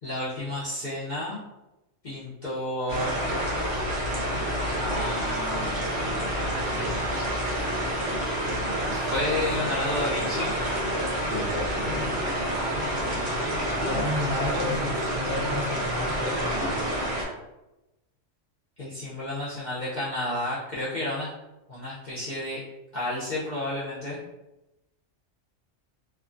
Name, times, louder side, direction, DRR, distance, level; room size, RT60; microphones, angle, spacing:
voice 1, 0.0-1.4 2.0-3.2 4.8-5.9 8.0-8.1 8.9-10.5 12.9-13.4 18.8-21.3 21.7-22.6 22.9-24.2, left 1 dB, 45° left, -9 dB, 0.7 m, -31 dB
sound 1, 2.9-17.2, equal, 75° right, 1.1 m, -28 dB
voice 2, 11.2-12.1 13.8-16.8, left 2 dB, 45° right, -7 dB, 1.1 m, -32 dB
2.9 x 2.3 x 2.5 m, 0.97 s
omnidirectional pair, 1.3 m